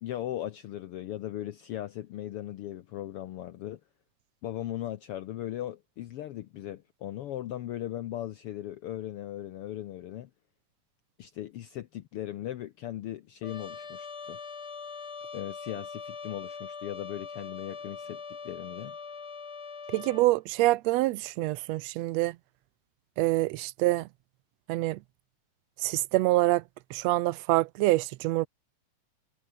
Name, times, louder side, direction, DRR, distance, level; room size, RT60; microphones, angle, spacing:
voice 1, 0.0-3.8 4.4-10.3 11.2-14.4 15.3-19.0, left 12 dB, 90° left, 1.2 m, -38 dB
Trumpet, 13.4-20.3, left 5 dB, 35° left, 2.5 m, -42 dB
voice 2, 19.9-22.4 23.2-24.1 24.7-25.0 25.8-26.6 26.9-28.5, right 18 dB, 80° right, 1.5 m, -26 dB
omnidirectional pair, 3.7 m